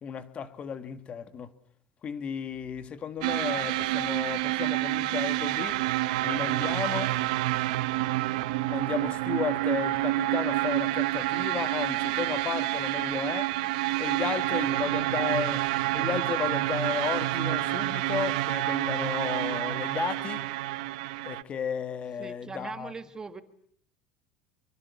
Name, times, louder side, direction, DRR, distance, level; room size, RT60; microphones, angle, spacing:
voice 1, 0.0-1.5 2.0-5.8 6.2-7.2 8.7-13.5 14.0-15.6 15.9-20.5 21.2-22.9, left 7 dB, 30° left, 1.9 m, -34 dB
sound 1, 3.2-21.4, right 18 dB, 85° right, 1.1 m, -28 dB
voice 2, 14.2-15.1 22.2-23.4, right 4 dB, 15° right, 1.6 m, -42 dB
25.5 x 23.0 x 8.4 m
cardioid pair, 145°, 4 cm